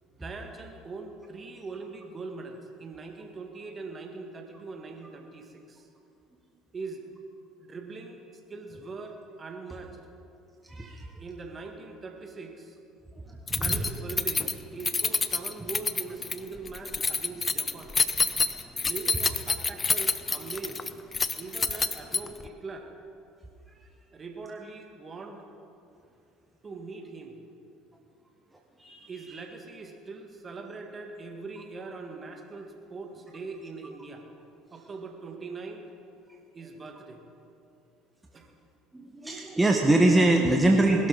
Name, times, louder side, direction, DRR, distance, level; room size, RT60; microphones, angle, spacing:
voice 1, 0.1-5.9 6.7-7.0 7.6-8.2 8.5-10.0 11.2-12.8 13.5-17.9 18.8-20.8 21.3-22.9 24.1-25.5 26.6-27.4 29.1-34.3 34.7-35.9 36.5-37.2 38.3-38.5, right 3 dB, 30° right, 4 dB, 1.9 m, -41 dB
voice 2, 10.7-11.1 13.3-13.8 28.8-29.1 38.9-41.1, right 2 dB, 15° right, 1 dB, 1.4 m, -23 dB
Keys jangling, 13.5-22.5, left 4 dB, 25° left, 0.7 m, -28 dB
20.5 x 12.5 x 4.1 m, 2.7 s
hypercardioid pair, 65°, 0 cm